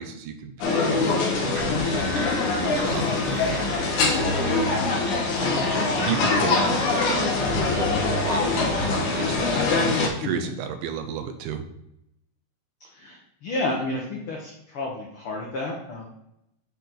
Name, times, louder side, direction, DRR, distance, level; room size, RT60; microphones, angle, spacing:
voice 1, 0.0-2.2 2.6-4.7 5.0-5.1 5.4-7.4 7.7-11.6, right 8 dB, 80° right, 7 dB, 2.2 m, -34 dB
sound 1, 0.6-10.1, left 3 dB, 70° left, 2.5 m, -23 dB
sound 2, 1.5-4.6, equal, 55° right, 2.4 m, -37 dB
voice 2, 5.4-6.0 10.2-10.5 12.8-16.0, left 2 dB, 85° left, -1 dB, 1.2 m, -32 dB
8.4 x 4.3 x 3.9 m, 0.81 s
omnidirectional pair, 3.9 m